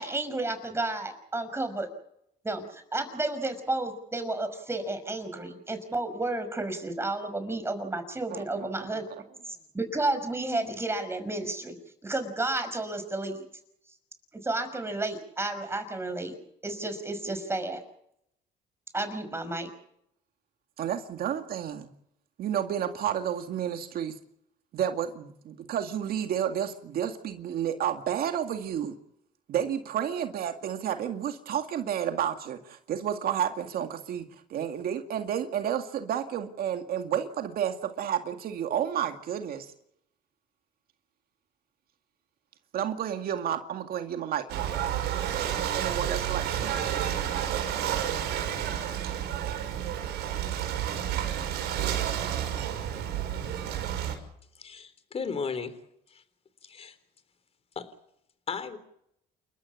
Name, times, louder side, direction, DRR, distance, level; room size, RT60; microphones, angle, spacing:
voice 1, 0.0-1.9 2.4-9.1 9.7-11.8 12.0-13.4 14.3-16.4 16.6-17.8 18.9-19.7, right 2 dB, 15° right, 9 dB, 5.7 m, -32 dB
voice 2, 8.3-8.7 20.8-21.9 22.4-24.1 24.7-29.0 29.5-39.7 42.7-44.5 45.7-46.8, right 9 dB, 65° right, 6 dB, 2.2 m, -31 dB
Ocean / Boat Water vehicle, 44.5-54.1, right 10 dB, 85° right, 5.7 m, -30 dB
voice 3, 54.6-55.8 56.1-56.2 56.6-57.0 57.8-57.9 58.5-58.8, left 5 dB, 35° left, 12 dB, 3.7 m, -35 dB
29.0 x 13.5 x 8.5 m, 0.74 s
cardioid pair, 110°, 17 cm